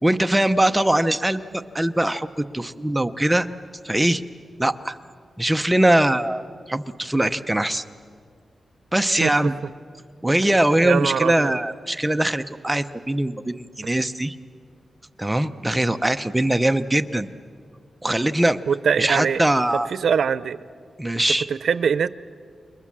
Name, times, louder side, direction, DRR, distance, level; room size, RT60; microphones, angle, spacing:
voice 1, 0.0-3.5 3.8-4.2 4.6-5.0 5.4-6.4 6.7-7.8 8.9-9.5 10.2-14.4 15.2-17.3 18.0-18.6 19.0-19.9 21.0-21.5, right 1 dB, 10° right, 9 dB, 0.7 m, -21 dB
voice 2, 10.8-11.6 18.7-19.4 20.0-20.6 21.5-22.1, right 7 dB, 85° right, 16 dB, 0.6 m, -22 dB
29.5 x 22.0 x 7.5 m, 2.1 s
wide cardioid pair, 135°, 0 cm